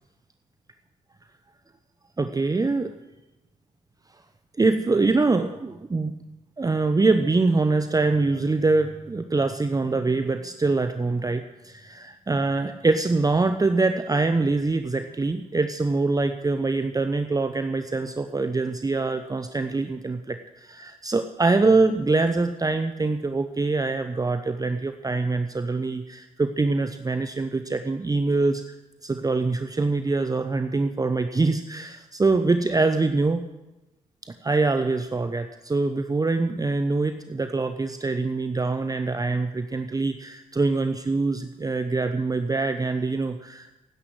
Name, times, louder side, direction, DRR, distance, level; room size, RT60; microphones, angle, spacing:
voice 1, 2.2-3.0 4.6-6.2 6.6-28.7 29.0-33.4 34.2-43.7, right 3 dB, 20° right, 8 dB, 0.8 m, -24 dB
17.0 x 10.0 x 6.3 m, 0.99 s
hypercardioid pair, 40°, 17 cm